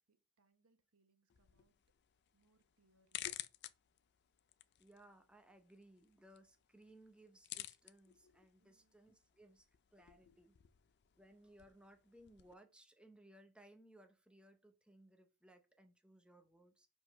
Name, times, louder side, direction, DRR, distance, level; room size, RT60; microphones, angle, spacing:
voice 1, 0.0-1.8 2.3-3.3 8.6-9.0, right 2 dB, 80° right, 1.0 m, -78 dB
sound 1, 1.3-12.5, left 14 dB, 50° left, 0.4 m, -54 dB
voice 2, 4.8-10.6 11.2-16.9, right 1 dB, 5° right, 0.7 m, -63 dB
5.0 x 3.9 x 5.1 m
head